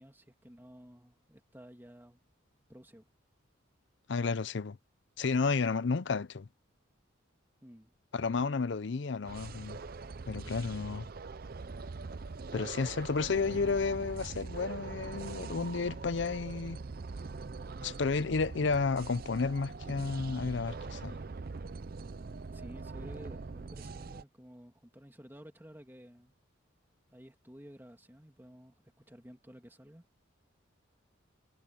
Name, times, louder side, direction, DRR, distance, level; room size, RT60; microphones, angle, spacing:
voice 1, 0.0-2.2 2.7-3.1 7.6-7.9 22.5-26.3 27.1-28.8 29.1-30.0, equal, 10° right, 2.4 m, -53 dB
voice 2, 4.1-4.8 5.2-6.5 8.1-9.8 10.3-11.1 12.5-16.8 17.8-21.2, left 4 dB, 60° left, 0.5 m, -32 dB
sound 1, 9.2-24.2, right 4 dB, 45° right, 0.5 m, -43 dB
head